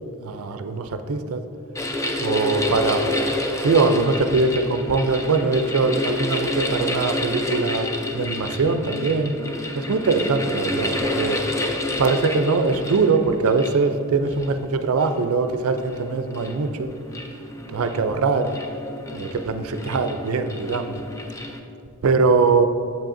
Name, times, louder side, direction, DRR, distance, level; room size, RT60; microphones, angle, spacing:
voice 1, 0.2-1.4 2.2-3.0 3.6-7.9 8.1-9.4 9.7-11.4 12.0-16.9 17.7-18.5 19.1-21.0 22.0-22.6, right 4 dB, 70° right, 8 dB, 0.4 m, -22 dB
sound 1, 1.8-21.6, left 1 dB, 15° left, 0.3 m, -29 dB
7.5 x 7.4 x 2.6 m, 2.7 s
head